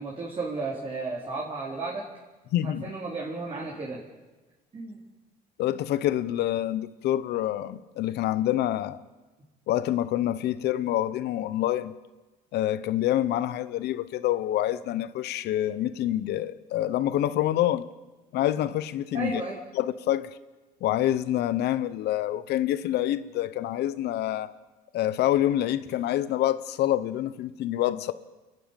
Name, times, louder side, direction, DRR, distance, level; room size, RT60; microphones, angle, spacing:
voice 1, 0.0-2.0 2.6-4.0 4.7-5.0 19.1-19.6, right 3 dB, 35° right, 4.0 m, -33 dB
voice 2, 2.5-2.8 5.6-9.0 9.7-11.9 12.5-17.8 18.3-19.4 19.7-20.3 20.8-24.5 24.9-28.1, left 13 dB, 75° left, 1.0 m, -27 dB
28.5 x 11.5 x 9.1 m
cardioid pair, 110°, 17 cm